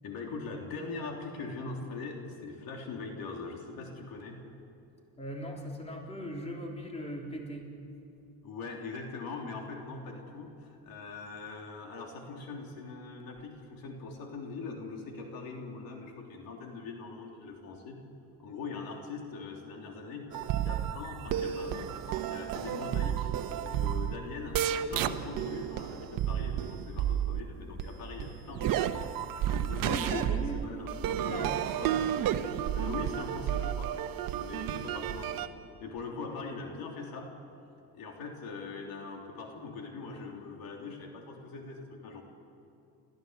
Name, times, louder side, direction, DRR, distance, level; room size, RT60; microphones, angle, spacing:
voice 1, 0.0-4.4 8.4-18.0 18.4-20.3 20.6-23.3 23.6-29.1 29.4-31.4 31.8-32.0 32.7-34.0 34.4-35.5 35.8-37.3 37.9-42.2, left 4 dB, 65° left, 1 dB, 3.4 m, -42 dB
voice 2, 5.2-7.8 29.8-30.6 31.3-32.0, equal, 15° left, 0 dB, 3.8 m, -39 dB
sound 1, 20.3-27.4 27.8-35.5, right 10 dB, 60° right, 1.1 m, -32 dB
29.5 x 14.5 x 8.0 m, 2.7 s
cardioid pair, 115°, 38 cm